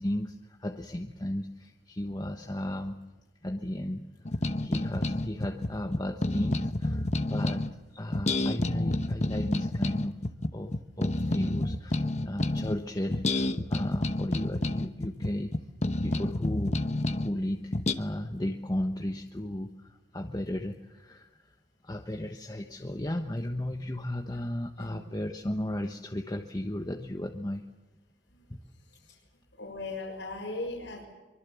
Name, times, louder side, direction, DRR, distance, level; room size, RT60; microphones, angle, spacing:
voice 1, 0.0-3.0 3.4-4.1 4.6-7.6 7.9-10.2 10.5-15.6 16.0-16.8 17.2-19.9 20.1-21.3 21.8-27.7 28.5-28.6, left 1 dB, 20° left, 3 dB, 1.2 m, -34 dB
sound 1, 4.3-7.7 8.1-12.8 13.1-17.3 17.7-17.9, left 2 dB, 40° left, 1.1 m, -29 dB
voice 2, 29.6-31.0, left 2 dB, 85° left, 0 dB, 6.7 m, -38 dB
24.5 x 24.0 x 7.1 m, 1.1 s
head